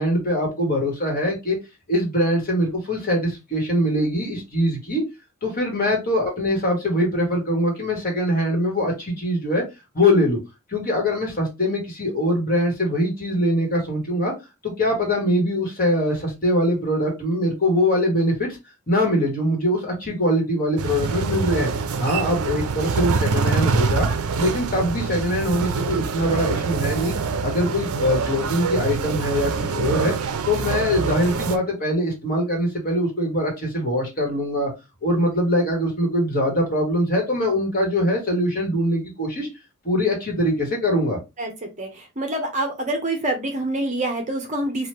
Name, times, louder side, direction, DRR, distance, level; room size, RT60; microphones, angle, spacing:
voice 1, 0.0-1.6 1.9-5.0 5.4-9.6 9.9-10.4 10.7-14.3 14.6-18.5 18.9-21.7 22.0-24.1 24.4-27.1 27.4-30.1 30.5-34.7 35.0-39.5 39.8-41.2, left 1 dB, 40° left, 0 dB, 1.4 m, -22 dB
sound 1, 20.8-31.6, right 5 dB, 80° right, 0.4 m, -25 dB
voice 2, 41.4-44.9, right 1 dB, 35° right, 4 dB, 0.7 m, -26 dB
3.0 x 2.4 x 3.2 m, 0.24 s
head